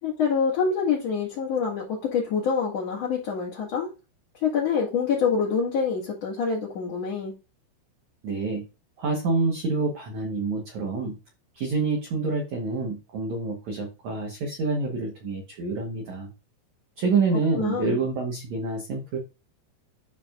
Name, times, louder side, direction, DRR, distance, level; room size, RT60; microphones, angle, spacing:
voice 1, 0.0-3.9 4.3-7.4 17.5-18.0, left 6 dB, 45° left, -4 dB, 2.4 m, -26 dB
voice 2, 8.2-8.6 9.0-11.2 11.5-16.3 17.0-19.2, right 3 dB, 85° right, 1 dB, 1.6 m, -27 dB
12.5 x 4.6 x 2.5 m, 0.29 s
omnidirectional pair, 5.3 m